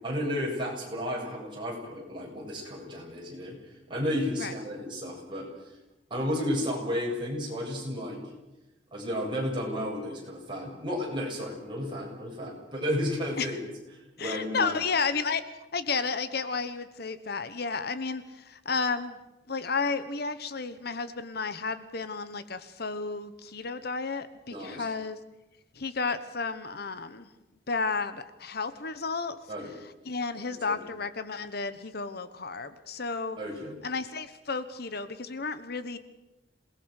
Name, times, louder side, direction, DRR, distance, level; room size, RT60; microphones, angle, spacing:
voice 1, 0.0-3.6 3.9-5.5 6.1-8.2 8.9-13.6 14.2-14.8 24.5-24.9 29.5-29.7 30.5-30.8 33.4-33.8, equal, 25° right, -2 dB, 7.7 m, -32 dB
voice 2, 14.2-15.4 15.7-19.2 19.5-25.2 25.8-27.3 27.7-29.4 30.0-33.4 33.8-36.0, left 4 dB, 60° left, 12 dB, 1.2 m, -32 dB
27.5 x 19.5 x 6.6 m, 0.99 s
head